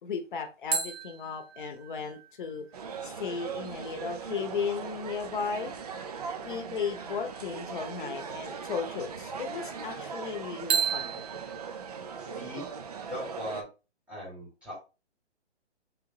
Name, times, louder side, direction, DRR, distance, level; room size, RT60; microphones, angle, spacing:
voice 1, 0.0-2.6 3.0-5.7 6.4-11.2, left 6 dB, 45° left, 0.8 m, -35 dB
sound 1, 0.7-4.2 10.7-13.4, right 6 dB, 65° right, 1.2 m, -35 dB
sound 2, 2.7-13.6, right 6 dB, 35° right, 0.4 m, -39 dB
voice 2, 12.2-12.7 13.1-13.6 14.1-14.8, equal, 5° right, 1.6 m, -39 dB
3.7 x 3.0 x 3.6 m
hypercardioid pair, 155°, 34 cm